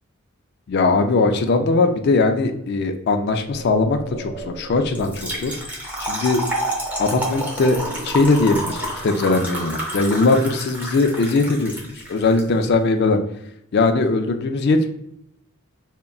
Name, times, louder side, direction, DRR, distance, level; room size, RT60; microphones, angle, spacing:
voice 1, 0.7-5.5 6.0-6.4 7.0-7.8 8.0-13.2 13.7-14.9, left 3 dB, 50° left, 6 dB, 0.3 m, -20 dB
sound 1, 3.3-5.7 7.5-9.1, right 1 dB, 75° right, 0.5 m, -38 dB
Trickle dribble / Fill (with liquid), 4.9-12.4, right 1 dB, 10° right, 0.6 m, -29 dB
3.7 x 2.1 x 2.2 m, 0.77 s
head